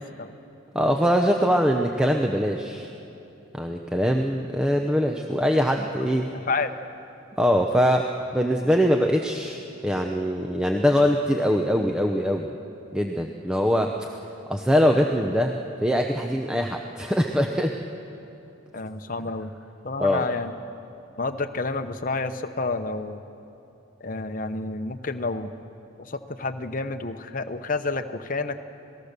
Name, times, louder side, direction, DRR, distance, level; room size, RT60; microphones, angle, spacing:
voice 1, 0.7-2.9 3.5-6.3 7.4-12.5 12.9-14.1 14.5-17.8 20.0-20.3, equal, 5° right, 3 dB, 0.7 m, -23 dB
voice 2, 6.3-6.7 18.7-19.5 19.8-20.5 21.2-23.2 24.0-25.5 26.0-28.6, left 3 dB, 40° left, 7 dB, 0.9 m, -29 dB
27.0 x 18.5 x 6.8 m, 2.9 s
head